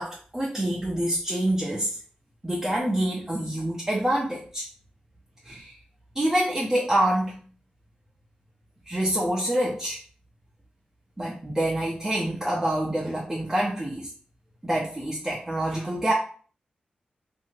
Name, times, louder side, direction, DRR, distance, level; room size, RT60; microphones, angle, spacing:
voice 1, 0.0-2.0 2.4-4.6 5.4-5.7 6.1-7.4 8.9-10.0 11.2-14.1 14.6-16.1, right 1 dB, 15° right, -4 dB, 0.7 m, -26 dB
2.8 x 2.7 x 2.7 m, 0.43 s
cardioid pair, 60°, 3 cm